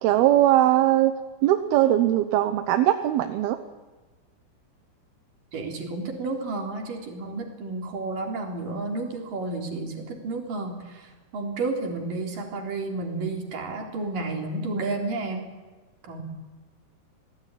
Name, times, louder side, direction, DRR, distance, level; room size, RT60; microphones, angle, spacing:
voice 1, 0.0-1.1 1.4-3.6, right 13 dB, 75° right, 8 dB, 2.7 m, -20 dB
voice 2, 5.5-15.5 16.0-16.2, right 3 dB, 55° right, 2 dB, 5.2 m, -31 dB
27.5 x 19.5 x 10.0 m, 1.3 s
omnidirectional pair, 4.9 m